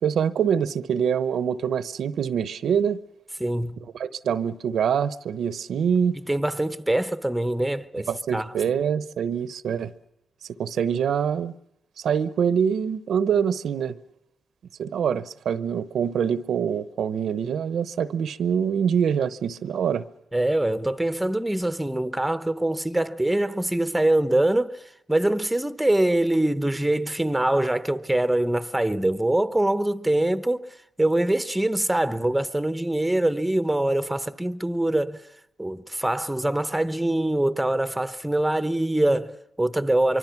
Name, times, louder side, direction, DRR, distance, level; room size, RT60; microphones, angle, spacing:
voice 1, 0.0-3.0 3.9-6.2 8.1-9.9 10.6-11.5 12.0-14.0 14.8-20.0, right 7 dB, 75° right, 0.8 m, -25 dB
voice 2, 3.4-3.8 6.2-8.6 20.3-35.3 35.6-40.2, right 1 dB, 5° right, 0.9 m, -24 dB
24.5 x 24.5 x 5.9 m
cardioid pair, 95°, 0 cm